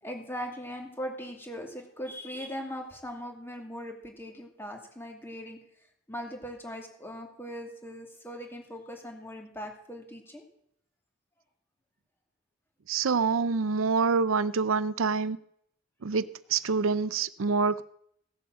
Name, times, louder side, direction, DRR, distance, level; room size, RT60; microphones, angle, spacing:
voice 1, 0.0-5.6 6.1-10.4, equal, 10° left, 2 dB, 2.6 m, -40 dB
voice 2, 12.9-15.4 16.0-17.8, right 5 dB, 85° right, 16 dB, 0.6 m, -26 dB
16.5 x 7.9 x 7.6 m, 0.70 s
head